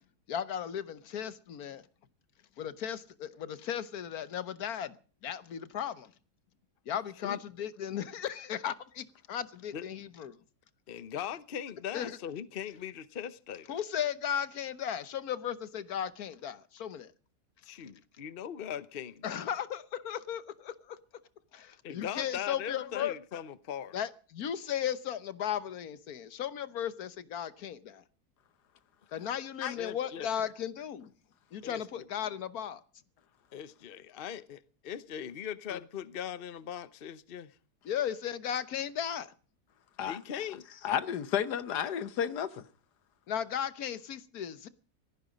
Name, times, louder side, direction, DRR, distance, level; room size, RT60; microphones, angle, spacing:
voice 1, 0.3-1.9 2.6-5.0 5.2-6.1 6.9-10.4 11.9-12.2 13.7-17.1 19.2-21.0 21.5-23.1 23.9-28.0 29.1-31.1 31.5-32.8 37.8-39.3 43.3-44.7, left 9 dB, 70° left, 1.5 m, -36 dB
voice 2, 10.9-13.7 17.6-19.4 21.8-24.0 29.2-29.3 29.7-30.3 31.6-32.1 33.5-34.6 34.8-37.5 40.1-40.6, left 9 dB, 45° left, 0.9 m, -40 dB
voice 3, 40.8-42.6, left 9 dB, 85° left, 1.6 m, -32 dB
17.5 x 15.0 x 5.2 m
omnidirectional pair, 1.7 m